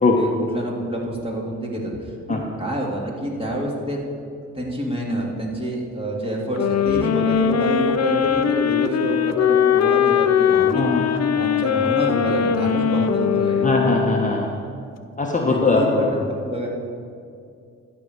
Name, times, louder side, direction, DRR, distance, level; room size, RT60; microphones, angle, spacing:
voice 1, 0.1-4.0 4.5-10.9 11.3-13.7 15.4-16.7, right 1 dB, 15° right, -3 dB, 3.0 m, -27 dB
sound 1, 6.6-14.5, left 8 dB, 55° left, 0.7 m, -20 dB
voice 2, 13.6-14.5 15.2-16.1, left 3 dB, 25° left, 0 dB, 1.3 m, -20 dB
13.5 x 4.9 x 8.2 m, 2.4 s
supercardioid pair, 65°, 32 cm